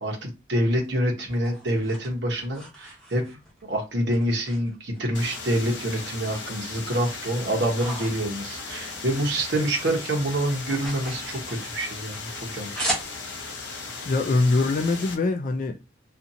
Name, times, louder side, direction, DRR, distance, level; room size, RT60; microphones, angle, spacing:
voice 1, 0.0-3.4 3.7-12.9, right 1 dB, 70° right, 0.9 m, -27 dB
sound 1, 0.7-3.6 4.1-5.2 5.5-6.5 6.9-9.5 9.8-13.6, right 1 dB, 5° left, 0.9 m, -37 dB
sound 2, 5.1-15.1, left 4 dB, 80° left, 0.7 m, -37 dB
voice 2, 14.0-16.0, left 3 dB, 45° left, 0.3 m, -23 dB
2.6 x 2.4 x 2.7 m
head